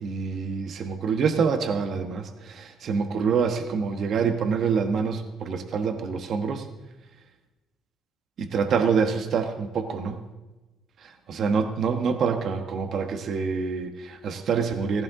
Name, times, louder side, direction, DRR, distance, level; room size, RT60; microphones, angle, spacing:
voice 1, 0.0-6.6 8.4-10.2 11.3-15.0, right 5 dB, 55° right, 7 dB, 1.4 m, -26 dB
16.0 x 15.5 x 3.8 m, 1.1 s
cardioid pair, 100°, 0 cm